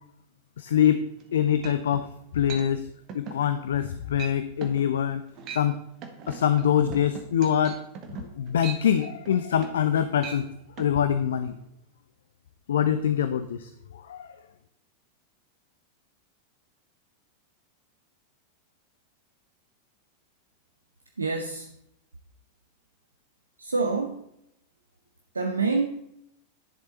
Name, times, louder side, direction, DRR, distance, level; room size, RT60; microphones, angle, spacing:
voice 1, 0.6-1.0 1.3-2.1 2.3-2.9 3.1-5.2 5.5-5.8 6.3-7.8 8.2-10.5 10.8-11.6 12.7-14.3, left 9 dB, 65° left, 11 dB, 0.5 m, -24 dB
sound 1, 1.2-1.3 1.6-2.1 2.5-2.7 3.1-3.4 3.8-3.9 4.2-4.4 4.6-4.8 5.3-5.7 6.0-9.9 10.2-10.4 10.8-10.9, right 6 dB, 35° right, 1.4 m, -40 dB
voice 2, 21.2-21.7 23.6-24.3 25.3-25.9, right 4 dB, 75° right, 5 dB, 0.7 m, -27 dB
11.0 x 6.8 x 4.2 m, 0.77 s
figure-of-eight pair, 90°, 0 cm